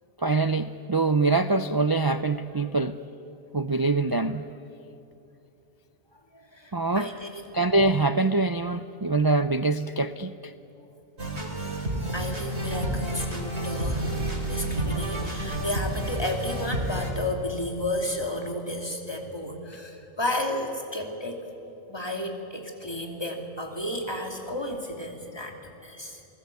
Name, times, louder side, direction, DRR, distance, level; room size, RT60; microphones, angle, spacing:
voice 1, 0.2-3.0 3.5-4.5 6.7-7.1 7.5-10.5, right 3 dB, 30° right, 11 dB, 0.4 m, -24 dB
voice 2, 6.3-7.4 12.1-14.1 14.4-21.4 21.9-26.2, left 1 dB, 20° left, 2 dB, 2.9 m, -32 dB
sound 1, 11.2-17.1, right 1 dB, 70° right, 3.9 m, -30 dB
28.5 x 19.5 x 8.4 m, 2.8 s
omnidirectional pair, 1.2 m